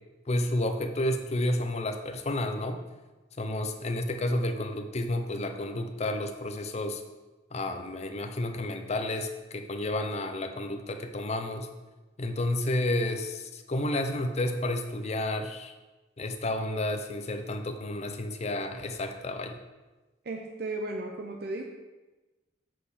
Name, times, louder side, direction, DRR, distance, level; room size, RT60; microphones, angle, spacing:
voice 1, 0.3-2.8 3.4-7.0 7.5-11.7 12.2-15.7 16.2-19.6, left 1 dB, 35° left, 6 dB, 0.6 m, -31 dB
voice 2, 20.2-21.6, right 2 dB, 60° right, 2 dB, 0.6 m, -35 dB
7.6 x 4.6 x 5.0 m, 1.1 s
head